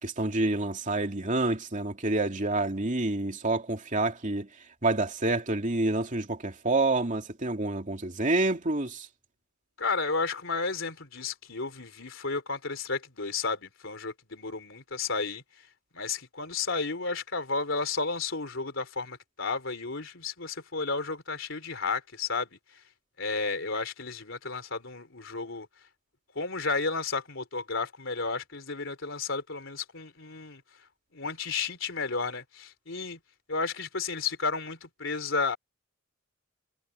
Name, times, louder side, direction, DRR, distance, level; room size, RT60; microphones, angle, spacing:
voice 1, 0.0-4.5 4.8-9.1, right 2 dB, 40° right, 2.6 m, -28 dB
voice 2, 9.8-15.7 15.9-22.8 23.2-25.7 26.4-30.6 31.1-33.2 33.5-35.6, left 4 dB, 65° left, 3.8 m, -32 dB
head